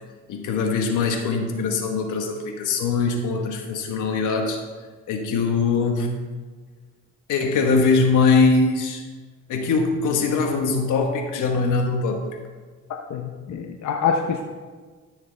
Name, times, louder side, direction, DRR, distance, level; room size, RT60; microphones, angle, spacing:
voice 1, 0.3-4.6 5.1-6.1 7.3-9.0 9.5-12.2, left 4 dB, 85° left, 4 dB, 1.4 m, -22 dB
voice 2, 13.1-14.5, left 6 dB, 65° left, 2 dB, 0.9 m, -25 dB
13.5 x 6.5 x 3.4 m, 1.4 s
cardioid pair, 90°, 30 cm